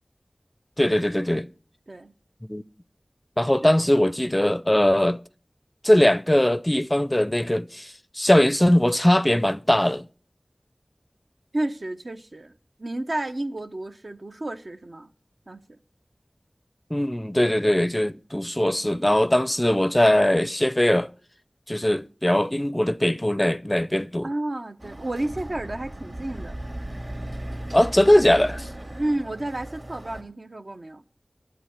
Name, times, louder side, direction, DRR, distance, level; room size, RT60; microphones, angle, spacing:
voice 1, 0.8-1.5 2.5-2.6 3.4-5.2 5.8-10.1 16.9-21.1 21.7-24.3 27.7-28.7, left 1 dB, 20° left, 0.4 m, -20 dB
voice 2, 11.5-12.5 12.8-15.1 15.5-15.8 24.2-26.6 29.0-31.0, right 1 dB, 65° right, 0.8 m, -31 dB
Chatter / Car passing by / Motorcycle, 24.8-30.2, right 1 dB, 50° right, 2.4 m, -37 dB
11.0 x 8.0 x 7.3 m
wide cardioid pair, 50°, 0 cm